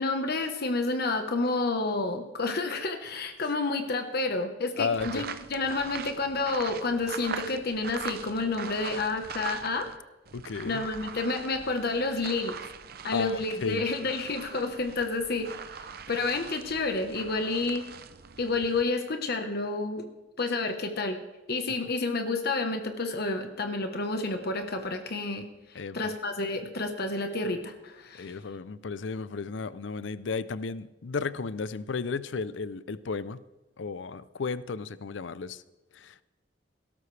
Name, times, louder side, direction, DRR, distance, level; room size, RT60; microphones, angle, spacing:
voice 1, 0.0-9.9 10.6-12.5 13.0-15.5 15.8-17.9 18.4-20.1 20.4-21.2 21.5-25.4 25.9-28.4, left 3 dB, 60° left, 6 dB, 1.2 m, -30 dB
voice 2, 4.8-5.3 10.3-10.9 13.1-13.8 25.7-26.1 28.1-33.4 33.8-35.6 35.9-36.2, left 4 dB, 75° left, 16 dB, 0.5 m, -33 dB
sound 1, 4.9-10.0 10.3-18.8, right 6 dB, 55° right, 0.7 m, -42 dB
17.0 x 13.0 x 3.3 m, 1.1 s
head